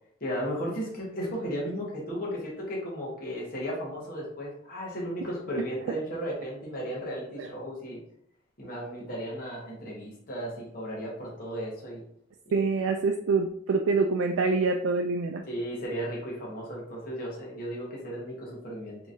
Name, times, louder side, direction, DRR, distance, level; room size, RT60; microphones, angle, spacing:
voice 1, 0.2-8.0 8.6-12.0 12.5-12.6 15.5-19.0, equal, 45° left, -4 dB, 1.0 m, -35 dB
voice 2, 12.5-15.4, right 4 dB, 90° right, 3 dB, 0.3 m, -26 dB
3.7 x 2.9 x 2.6 m, 0.66 s
head